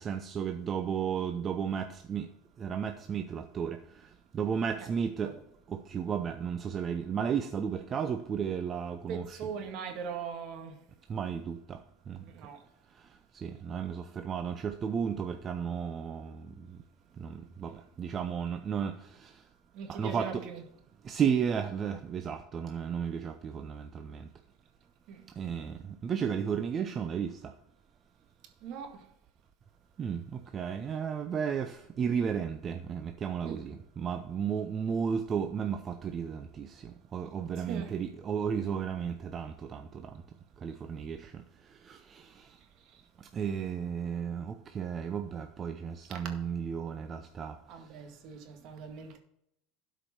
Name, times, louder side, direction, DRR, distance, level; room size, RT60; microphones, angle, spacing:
voice 1, 0.0-2.3 2.6-3.8 4.3-5.3 5.9-9.4 11.1-11.8 12.1-12.2 13.4-16.3 17.2-17.7 18.0-18.9 19.9-20.4 21.1-24.2 25.4-25.7 26.0-27.3 30.0-30.2 30.5-36.7 37.1-39.8 40.6-41.2 41.9-42.0 43.3-47.5, right 7 dB, 35° right, 0.7 m, -33 dB
voice 2, 9.1-10.8 12.1-12.6 19.7-20.6 25.1-25.3 28.6-29.1 33.4-33.6 37.6-37.9 42.8-43.1 46.1-46.2 47.7-49.2, right 6 dB, 55° right, 2.0 m, -41 dB
12.0 x 5.2 x 5.9 m
supercardioid pair, 105°, 0 cm